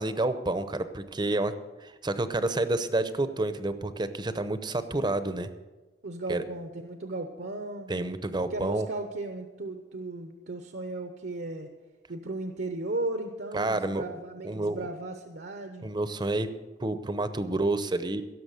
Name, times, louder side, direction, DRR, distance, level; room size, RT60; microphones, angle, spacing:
voice 1, 0.0-1.5 1.8-5.5 6.3-6.4 7.9-8.9 13.5-14.0 14.4-14.8 15.8-16.5 16.8-18.2, right 2 dB, 25° right, 11 dB, 0.7 m, -29 dB
voice 2, 6.0-7.9 8.5-11.7 12.1-15.9, right 2 dB, 65° right, 7 dB, 0.8 m, -36 dB
16.5 x 6.9 x 6.6 m, 1.2 s
head